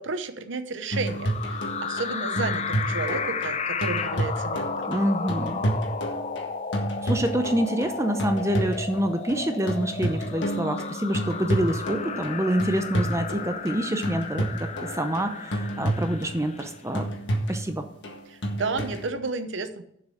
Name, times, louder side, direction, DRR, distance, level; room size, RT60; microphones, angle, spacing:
voice 1, 0.0-4.9 18.3-19.8, right 3 dB, 70° right, 10 dB, 0.8 m, -32 dB
sound 1, 0.9-19.1, right 1 dB, 65° left, 1.6 m, -31 dB
sound 2, 1.1-16.7, left 5 dB, 35° left, 0.6 m, -34 dB
voice 2, 4.9-5.6 7.0-17.9, right 1 dB, 15° right, 7 dB, 0.7 m, -27 dB
7.4 x 6.2 x 7.9 m, 0.72 s
head